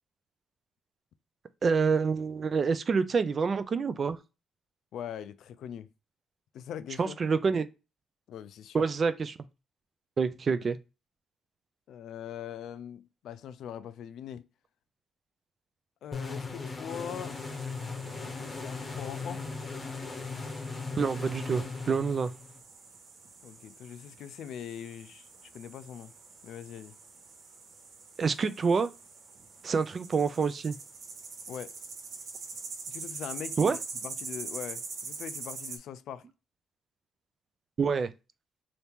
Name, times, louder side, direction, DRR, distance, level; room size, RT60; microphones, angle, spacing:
voice 1, 1.6-4.2 7.0-7.7 8.7-9.4 10.2-10.8 21.0-22.3 28.2-28.9 29.6-30.8 33.6-33.8 37.8-38.1, right 5 dB, 40° right, 0.4 m, -27 dB
voice 2, 4.9-5.9 6.5-7.2 8.3-8.8 11.9-14.5 16.0-17.4 17.8-19.4 23.4-25.3 25.5-26.1 26.4-27.0 31.5-31.7 32.9-36.2, left 9 dB, 75° left, 0.3 m, -42 dB
sound 1, 16.1-22.6, left 4 dB, 25° left, 0.8 m, -38 dB
sound 2, 16.9-35.8, right 4 dB, 60° right, 1.2 m, -45 dB
2.9 x 2.7 x 3.5 m
cardioid pair, 90°, 0 cm